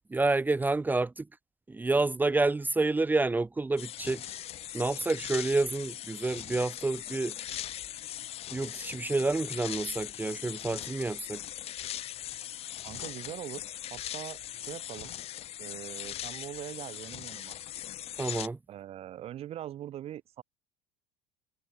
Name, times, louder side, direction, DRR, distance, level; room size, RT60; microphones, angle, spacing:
voice 1, 0.1-1.2 1.7-4.4 4.7-7.3 8.5-11.4 18.2-18.6, right 3 dB, 15° right, 0.9 m, -29 dB
sound 1, 3.8-18.5, left 12 dB, 45° left, 1.2 m, -40 dB
voice 2, 12.8-15.1 15.6-17.6 18.7-20.4, right 12 dB, 45° right, 1.4 m, -42 dB
hypercardioid pair, 85°, 14 cm